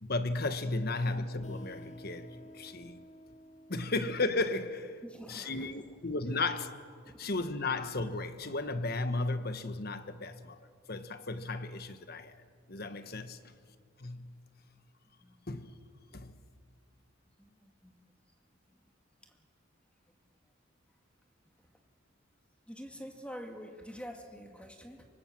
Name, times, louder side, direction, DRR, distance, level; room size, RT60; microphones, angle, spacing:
voice 1, 0.0-3.1 3.7-5.0 5.3-6.8 7.2-10.6 10.9-12.4 12.7-13.5 14.0-14.3 15.5-15.7 16.1-16.4, left 2 dB, 50° left, 1.4 m, -34 dB
sound 1, 1.0-6.4, equal, 35° left, 1.2 m, -54 dB
voice 2, 5.0-6.0 7.0-7.3 15.2-15.4 17.4-18.0 18.7-18.8 19.2-19.5 20.4-20.5 21.6-21.7 22.7-25.1, equal, 5° left, 2.2 m, -48 dB
25.0 x 24.5 x 7.6 m
head